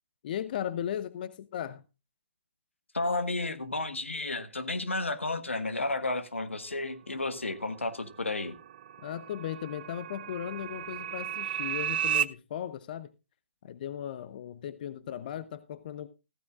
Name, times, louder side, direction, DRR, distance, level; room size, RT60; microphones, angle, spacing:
voice 1, 0.2-1.8 9.0-13.1 13.6-16.1, left 10 dB, 45° left, 16 dB, 0.7 m, -37 dB
voice 2, 2.9-8.5, left 2 dB, 85° left, 11 dB, 1.6 m, -32 dB
sound 1, 7.9-12.2, right 10 dB, 50° right, 0.6 m, -34 dB
15.0 x 13.5 x 2.4 m, 0.28 s
figure-of-eight pair, 135°, 7 cm